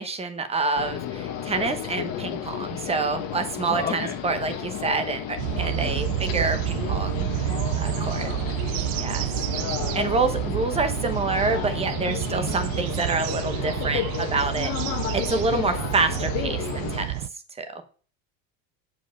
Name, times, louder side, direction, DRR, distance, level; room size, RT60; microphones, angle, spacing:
voice 1, 0.0-8.3 9.0-9.3 9.9-14.7 15.1-17.2 17.6-17.8, right 3 dB, 15° right, 9 dB, 0.9 m, -27 dB
sound 1, 0.8-17.1, left 9 dB, 55° left, 1.4 m, -32 dB
voice 2, 3.7-4.2 5.8-6.0 8.2-8.4, left 6 dB, 25° left, 3 dB, 0.7 m, -33 dB
sound 2, 5.4-17.3, right 17 dB, 75° right, 0.5 m, -29 dB
8.1 x 5.0 x 5.7 m, 0.42 s
cardioid pair, 145°, 40 cm